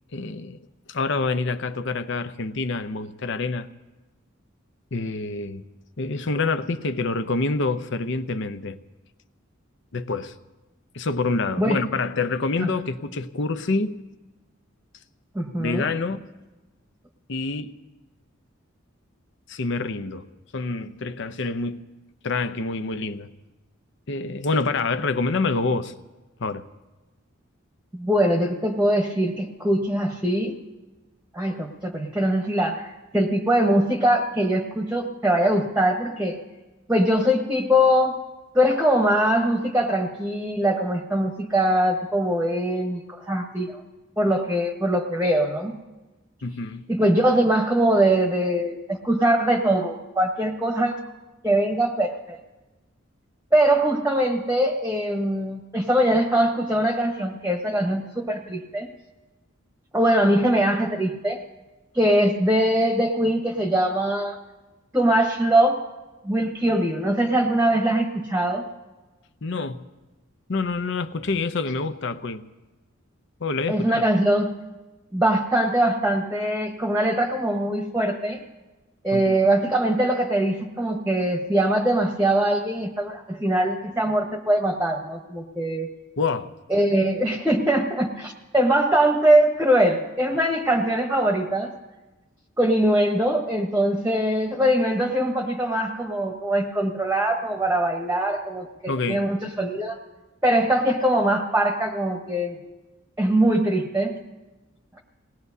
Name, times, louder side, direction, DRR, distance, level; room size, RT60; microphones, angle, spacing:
voice 1, 0.1-0.6 0.9-3.7 4.9-5.6 6.0-8.8 9.9-10.3 10.9-13.9 15.6-16.3 17.3-17.7 19.5-20.3 20.5-21.8 22.2-23.3 24.1-25.9 26.4-26.7 46.4-46.9 69.4-69.8 70.5-72.4 73.4-74.0 79.1-79.4 86.2-86.5 98.9-99.2, left 3 dB, 60° left, 0.7 m, -27 dB
voice 2, 15.3-15.9 28.0-30.6 31.3-36.4 36.9-38.2 38.5-43.0 43.3-43.8 44.2-45.8 46.9-51.0 51.4-52.4 53.5-58.9 59.9-61.4 61.9-64.4 64.9-65.8 66.2-68.7 73.7-74.5 75.1-78.4 79.0-85.9 86.7-91.7 92.6-100.0 100.4-102.6 103.2-104.2, right 1 dB, 10° right, 1.0 m, -22 dB
27.0 x 19.0 x 2.7 m
head